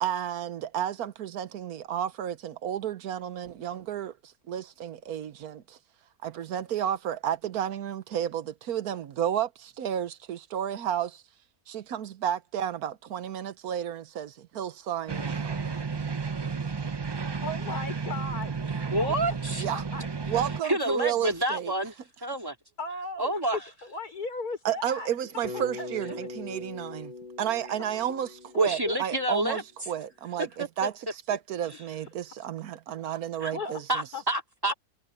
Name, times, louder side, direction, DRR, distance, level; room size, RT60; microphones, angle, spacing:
voice 1, 0.0-5.8 6.2-11.2 11.7-15.6 19.6-19.8 20.3-21.7 24.6-27.1 27.4-30.9 31.3-34.1, right 10 dB, 80° right, 1.4 m, -32 dB
sound 1, 15.1-20.6, right 5 dB, 35° right, 0.4 m, -32 dB
voice 2, 17.4-18.5 19.0-19.1 19.7-21.1 22.8-25.1 25.5-26.3 28.6-29.0 33.5-33.8 34.1-34.2, left 2 dB, 85° left, 5.9 m, -37 dB
voice 3, 18.9-19.7 20.6-21.9 22.2-22.5 23.2-23.6 28.6-29.6 30.6-30.7 33.4-33.5 33.9-34.7, right 1 dB, 15° right, 2.8 m, -28 dB
Bass guitar, 25.4-29.6, left 2 dB, 30° left, 3.7 m, -41 dB
omnidirectional pair, 1.6 m